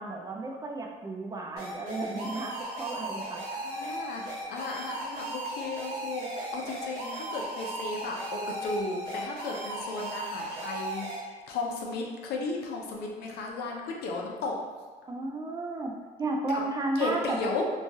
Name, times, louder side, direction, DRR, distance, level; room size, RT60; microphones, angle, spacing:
voice 1, 0.0-3.4 15.1-17.4, right 2 dB, 20° right, 0 dB, 0.4 m, -33 dB
sound 1, 1.6-11.2, right 1 dB, 65° right, 1.0 m, -36 dB
voice 2, 3.5-14.6 16.5-16.6 17.0-17.7, left 3 dB, 70° left, 0 dB, 0.5 m, -35 dB
3.0 x 2.3 x 2.6 m, 1.4 s
cardioid pair, 110°, 17 cm